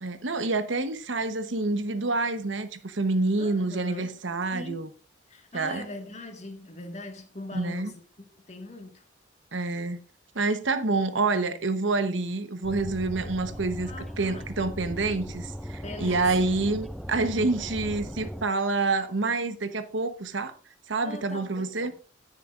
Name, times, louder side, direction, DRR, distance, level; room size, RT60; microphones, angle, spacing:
voice 1, 0.0-4.9 5.5-5.8 7.5-7.9 9.5-10.0 10.3-13.9 14.2-20.5 20.9-21.9, right 3 dB, 80° right, 1.0 m, -27 dB
voice 2, 3.4-4.2 4.5-4.8 5.3-9.0 11.0-11.5 13.1-13.5 13.8-14.5 15.8-16.5 21.0-22.0, left 2 dB, 35° left, 1.8 m, -42 dB
sound 1, 12.6-18.4, equal, ahead, 0.4 m, -38 dB
17.5 x 6.8 x 2.5 m
head